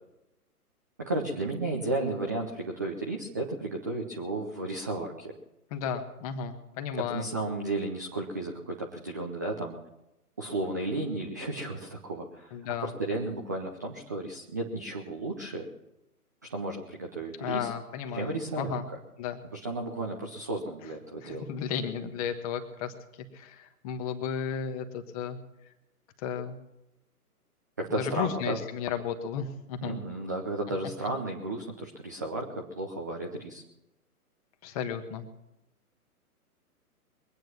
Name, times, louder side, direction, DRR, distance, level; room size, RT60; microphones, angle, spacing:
voice 1, 1.0-5.3 7.1-9.8 10.4-12.5 12.8-15.7 16.5-17.7 18.1-18.8 19.5-21.4 27.8-28.6 29.8-33.6, right 2 dB, 15° right, 0 dB, 0.5 m, -33 dB
voice 2, 5.7-7.3 12.5-12.9 17.4-18.8 19.2-19.4 21.2-22.9 23.3-25.4 26.2-26.6 27.9-30.0 34.6-35.2, left 7 dB, 25° left, 7 dB, 1.3 m, -34 dB
22.5 x 9.2 x 6.0 m, 0.90 s
figure-of-eight pair, 125°, 46 cm